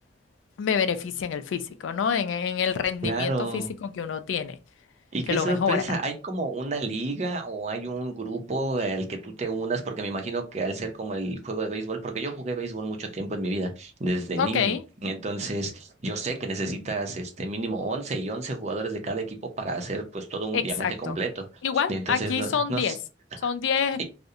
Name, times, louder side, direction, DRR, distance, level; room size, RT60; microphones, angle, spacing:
voice 1, 0.6-4.6 5.3-5.8 14.4-14.8 20.5-21.1 21.6-22.9 23.4-24.0, left 7 dB, 85° left, 0.3 m, -27 dB
voice 2, 3.0-3.7 5.1-14.7 15.0-21.5 21.9-23.0 23.4-23.5 24.0-24.1, right 2 dB, 35° right, 0.5 m, -30 dB
2.7 x 2.0 x 2.4 m
head